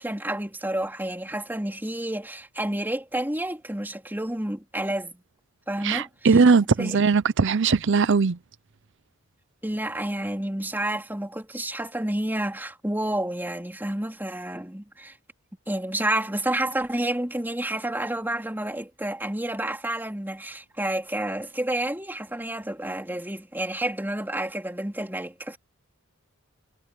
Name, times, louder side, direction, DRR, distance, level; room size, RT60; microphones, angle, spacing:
voice 1, 0.0-5.1 5.7-6.4 6.8-7.0 9.6-15.2 15.7-25.6, right 1 dB, 10° right, 3.8 m, -30 dB
voice 2, 5.8-8.4, right 4 dB, 55° right, 0.6 m, -20 dB
head